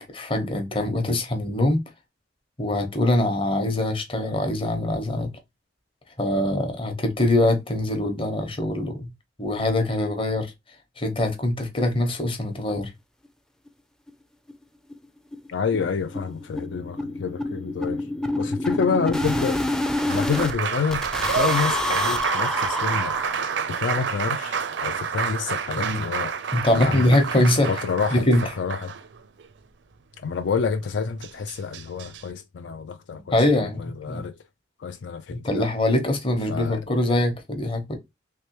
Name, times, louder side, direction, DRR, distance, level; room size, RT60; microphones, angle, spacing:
voice 1, 0.1-1.8 2.6-5.3 6.2-9.1 9.4-10.5 11.0-12.9 25.8-26.0 26.5-27.7 28.1-28.4 33.3-34.2 35.4-38.0, left 1 dB, 30° left, 0.9 m, -23 dB
sound 1, 13.7-13.8 14.1-14.2 14.5-14.6 14.9-15.1 15.3-20.5 20.9-23.7, left 1 dB, 5° left, 0.4 m, -27 dB
voice 2, 15.5-19.6 20.1-23.3 23.7-26.3 26.7-27.2 27.7-28.3 28.6-28.9 30.2-34.4 34.8-35.7 36.5-36.8, left 5 dB, 70° left, 0.4 m, -28 dB
Applause, 19.2-29.5 30.8-30.9 31.2-32.2, right 6 dB, 70° right, 0.5 m, -29 dB
3.3 x 3.2 x 2.9 m
head